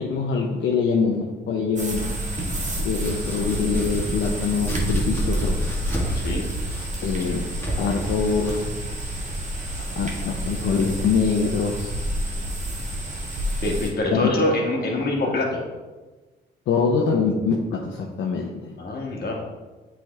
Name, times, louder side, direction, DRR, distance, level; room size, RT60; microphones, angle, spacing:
voice 1, 0.0-2.0 2.8-5.5 7.0-7.4 7.8-8.7 10.0-11.9 14.1-14.3 16.7-18.5, left 5 dB, 70° left, 0 dB, 0.7 m, -24 dB
sound 1, 1.8-13.9, right 1 dB, 40° right, 1.6 m, -28 dB
Domestic sounds home sounds, 2.6-10.4, left 1 dB, 10° left, 1.8 m, -35 dB
voice 2, 13.6-15.6 18.8-19.4, left 2 dB, 50° left, -1 dB, 1.5 m, -24 dB
7.7 x 3.5 x 3.5 m, 1.2 s
cardioid pair, 90°, 20 cm